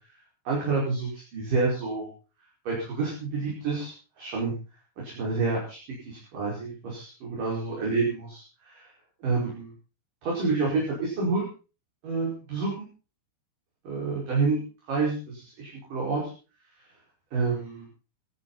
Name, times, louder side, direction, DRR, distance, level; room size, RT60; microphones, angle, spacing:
voice 1, 0.4-2.1 2.6-4.5 5.0-5.8 6.1-8.9 9.2-9.7 10.2-11.4 12.0-12.7 13.8-14.6 14.9-16.2 17.3-17.9, right 4 dB, 40° right, -4 dB, 6.5 m, -28 dB
27.5 x 10.5 x 4.2 m, 0.35 s
omnidirectional pair, 5.8 m